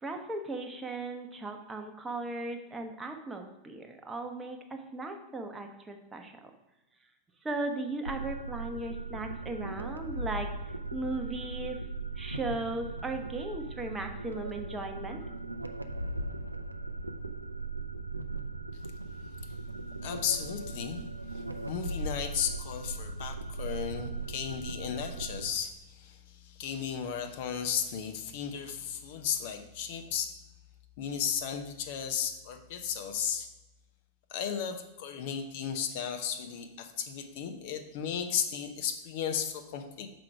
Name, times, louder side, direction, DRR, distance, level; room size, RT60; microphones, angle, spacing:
voice 1, 0.0-6.4 7.4-11.8 12.2-15.2, right 2 dB, 15° right, 4 dB, 0.9 m, -37 dB
sound 1, 8.1-25.5, right 2 dB, 85° right, 0.3 m, -38 dB
voice 2, 20.0-21.0 21.3-30.3 31.0-33.5 34.3-40.1, left 8 dB, 50° left, 6 dB, 0.7 m, -35 dB
6.1 x 4.9 x 4.6 m, 1.0 s
figure-of-eight pair, 90°, 0 cm